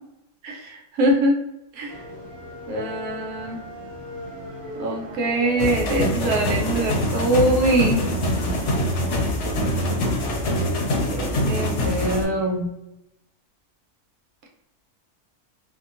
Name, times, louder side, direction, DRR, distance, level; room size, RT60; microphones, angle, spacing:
voice 1, 0.4-1.4 1.7-2.0 2.7-3.6 4.8-8.1 11.0-12.7, right 1 dB, 75° right, 1 dB, 1.1 m, -23 dB
sound 1, 1.9-10.9, equal, 35° right, 0.4 m, -39 dB
sound 2, 5.6-12.2, left 1 dB, 65° left, 0.8 m, -24 dB
2.8 x 2.2 x 2.4 m, 0.87 s
omnidirectional pair, 1.6 m